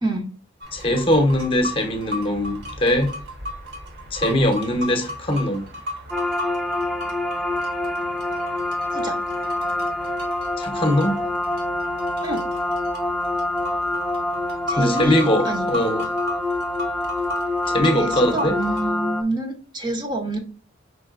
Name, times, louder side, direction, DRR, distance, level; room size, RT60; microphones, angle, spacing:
sound 1, 0.6-18.9, left 1 dB, 55° right, 1.1 m, -36 dB
voice 1, 0.7-3.2 4.1-5.6 10.6-11.2 14.8-16.0 17.7-18.6, left 1 dB, 25° left, 0.8 m, -21 dB
sound 2, 6.1-19.2, left 1 dB, ahead, 0.3 m, -26 dB
voice 2, 14.7-15.7 17.8-20.4, right 2 dB, 20° right, 0.7 m, -27 dB
5.2 x 3.6 x 2.4 m
head